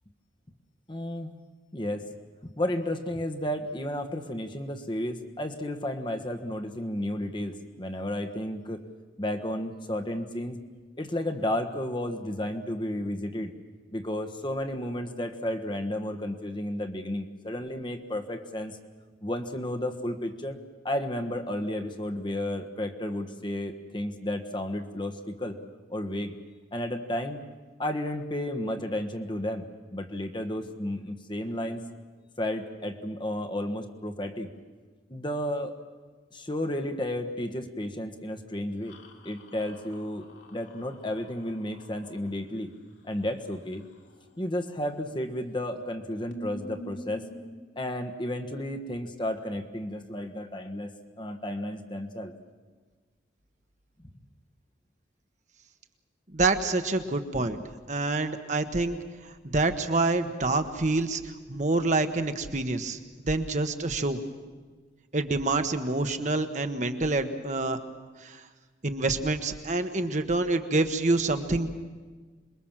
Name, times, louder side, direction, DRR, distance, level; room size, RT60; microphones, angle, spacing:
voice 1, 0.9-1.3 1.7-2.1 2.4-8.8 9.2-10.6 11.0-13.5 13.9-18.8 19.2-20.6 20.8-25.6 25.9-26.4 26.7-27.4 27.8-29.7 29.9-31.8 32.4-34.5 35.1-35.7 36.3-39.0 39.2-42.7 43.0-43.8 44.4-47.2 47.7-52.3 57.4-57.5, left 1 dB, 25° left, 5 dB, 1.4 m, -32 dB
sound 1, 38.9-42.3 45.0-45.5 45.8-45.9 46.3-47.4, equal, 80° left, 3.1 m, -46 dB
voice 2, 56.3-57.6 57.9-59.0 59.2-63.0 63.3-64.2 65.1-67.8 68.2-68.4 68.8-71.7, right 2 dB, 40° right, 7 dB, 1.2 m, -27 dB
27.0 x 21.0 x 7.4 m, 1.4 s
head